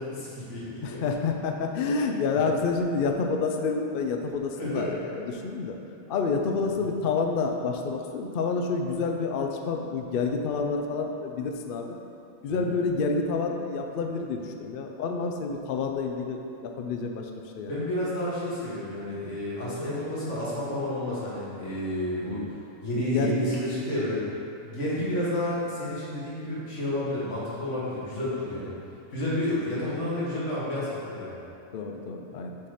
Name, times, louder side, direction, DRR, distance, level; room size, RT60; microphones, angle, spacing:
voice 1, 0.0-1.0 4.5-5.0 6.8-6.9 12.5-12.8 17.6-22.4 22.8-24.2 24.6-28.8 29.1-31.4, left 1 dB, 55° left, -8 dB, 1.9 m, -30 dB
voice 2, 0.8-5.8 6.1-12.0 12.4-17.3 17.6-17.7 23.0-23.5 25.0-25.1 28.6-28.7 31.7-32.6, left 4 dB, 75° left, 3 dB, 0.5 m, -28 dB
6.0 x 4.2 x 4.9 m, 2.6 s
omnidirectional pair, 1.5 m